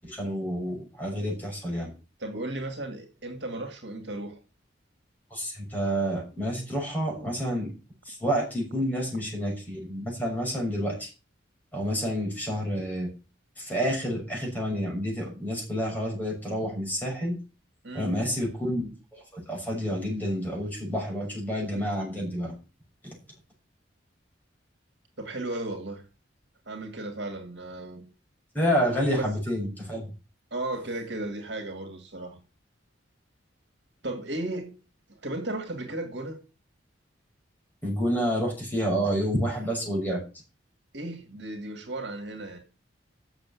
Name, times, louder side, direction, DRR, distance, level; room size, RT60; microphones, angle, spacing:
voice 1, 0.0-1.9 5.3-7.7 8.0-11.1 11.7-13.1 13.6-17.4 17.9-18.9 19.3-22.5 28.5-30.1 37.8-40.2, equal, 10° left, 6.4 m, -29 dB
voice 2, 2.2-4.4 17.8-18.1 25.2-26.0 26.7-28.0 28.8-29.3 30.5-32.4 34.0-34.7 35.1-36.4 40.9-42.6, right 2 dB, 65° right, 2.3 m, -35 dB
7.8 x 7.2 x 8.4 m
head